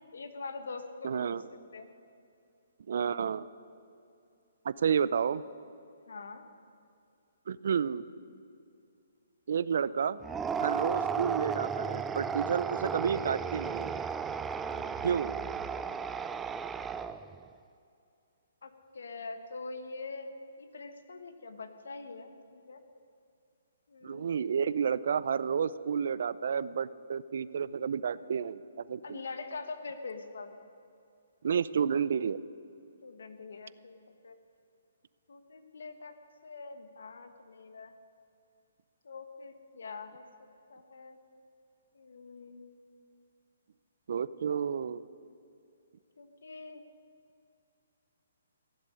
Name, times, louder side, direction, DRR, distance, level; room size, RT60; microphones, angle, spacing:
voice 1, 0.1-1.4 1.7-1.9 6.1-6.5 14.7-15.0 18.6-20.3 20.6-22.8 23.9-24.4 29.0-30.6 33.0-34.0 34.2-34.4 35.3-37.9 39.0-40.2 40.7-41.2 41.9-42.7 46.2-46.8, left 4 dB, 75° left, 8 dB, 1.5 m, -44 dB
voice 2, 1.0-1.4 2.9-3.5 4.6-5.4 7.5-8.0 9.5-10.2 10.6-13.9 15.0-15.4 24.0-28.6 28.9-29.2 31.4-32.4 44.1-45.0, right 7 dB, 65° right, 18 dB, 0.5 m, -30 dB
sound 1, 10.2-17.4, right 6 dB, 10° right, 0.4 m, -34 dB
15.5 x 7.6 x 9.9 m, 2.5 s
hypercardioid pair, 145°, 0 cm